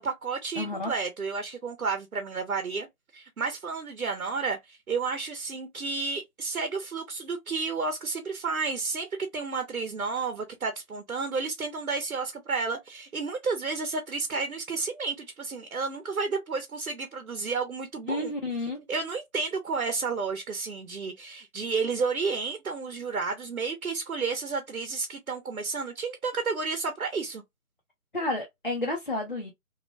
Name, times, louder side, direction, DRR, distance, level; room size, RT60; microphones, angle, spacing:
voice 1, 0.0-2.9 3.1-18.3 18.9-27.4, right 4 dB, 70° right, 0.9 m, -31 dB
voice 2, 0.6-0.9 18.1-18.8 28.1-29.5, left 2 dB, 40° left, 0.5 m, -30 dB
3.0 x 2.1 x 2.6 m
figure-of-eight pair, 155°, 45 cm